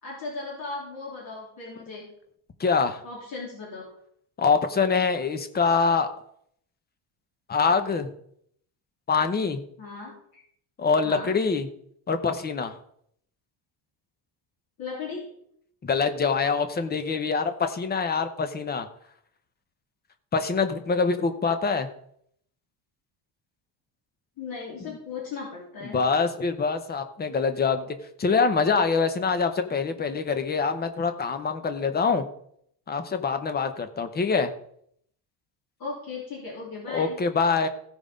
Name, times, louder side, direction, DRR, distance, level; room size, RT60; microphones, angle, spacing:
voice 1, 0.0-2.0 3.0-3.8 9.8-10.1 11.0-11.3 14.8-15.3 24.4-26.0 35.8-37.2, left 4 dB, 45° left, -4 dB, 3.3 m, -37 dB
voice 2, 2.6-3.0 4.4-6.1 7.5-8.1 9.1-9.6 10.8-11.7 12.1-12.7 15.8-18.9 20.3-21.9 24.9-25.0 25.8-32.2 32.9-34.5 36.9-37.7, left 5 dB, 20° left, 9 dB, 0.7 m, -25 dB
15.5 x 5.3 x 5.0 m, 0.69 s
cardioid pair, 170°, 47 cm